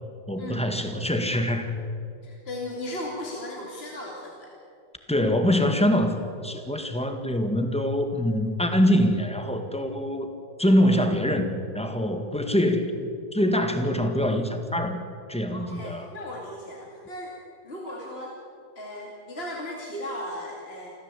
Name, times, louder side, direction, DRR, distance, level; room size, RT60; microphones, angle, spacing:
voice 1, 0.3-1.7 5.1-10.3 10.6-15.0 15.3-16.1, equal, 5° left, 6 dB, 1.7 m, -24 dB
voice 2, 2.2-4.5 15.5-17.4 17.6-18.4 18.8-20.9, left 1 dB, 35° left, -2 dB, 2.8 m, -36 dB
27.5 x 14.5 x 8.3 m, 2.5 s
omnidirectional pair, 1.8 m